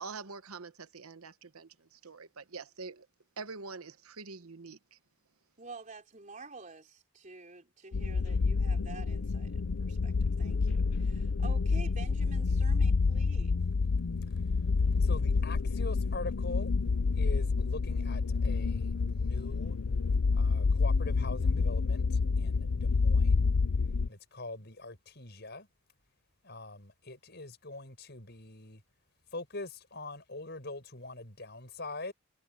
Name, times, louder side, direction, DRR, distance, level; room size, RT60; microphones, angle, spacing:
voice 1, 0.0-3.1 3.4-5.0, right 4 dB, 80° right, 1.0 m, -45 dB
voice 2, 5.6-13.5, right 3 dB, 35° right, 4.0 m, -49 dB
sound 1, 7.9-24.1, left 4 dB, 75° left, 0.6 m, -28 dB
voice 3, 14.3-16.7 17.2-19.8 20.3-23.5 24.1-25.7 26.4-28.8 29.3-32.1, left 2 dB, 50° left, 7.0 m, -43 dB
head